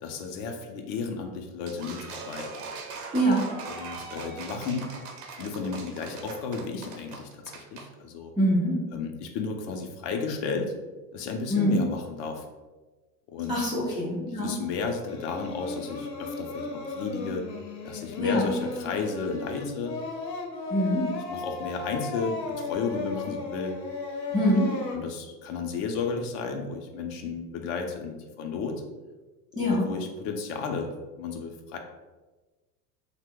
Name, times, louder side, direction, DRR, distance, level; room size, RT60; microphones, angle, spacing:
voice 1, 0.0-2.5 3.7-4.9 5.4-8.4 8.9-10.7 11.1-12.5 13.3-13.6 14.3-17.5 17.8-20.0 21.3-23.8 24.3-24.4 24.9-28.8 29.5-31.8, left 4 dB, 45° left, 4 dB, 0.5 m, -33 dB
sound 1, 1.7-7.9, right 4 dB, 55° right, 0.7 m, -41 dB
voice 2, 3.1-3.5 8.4-8.8 11.5-11.8 13.5-14.5 18.2-18.5 20.7-21.1 24.3-24.7 29.6-29.8, equal, 10° right, -8 dB, 0.3 m, -24 dB
Singing, 15.0-25.0, left 4 dB, 90° left, 0.7 m, -35 dB
2.7 x 2.1 x 3.5 m, 1.2 s
hypercardioid pair, 90°, 49 cm